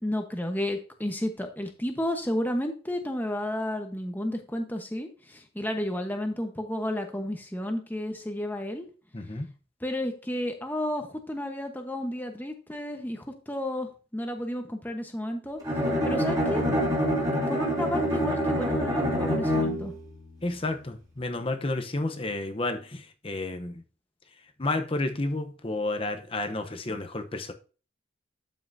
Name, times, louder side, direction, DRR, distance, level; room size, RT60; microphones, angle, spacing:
voice 1, 0.0-8.9 9.8-15.6 16.0-16.7 17.5-19.9, left 1 dB, 10° left, 1.1 m, -32 dB
voice 2, 9.1-9.5 20.4-23.8 24.6-27.5, left 2 dB, 30° left, 0.8 m, -31 dB
Bowed string instrument, 15.6-20.0, equal, 20° right, 3.1 m, -26 dB
12.5 x 5.7 x 2.7 m
head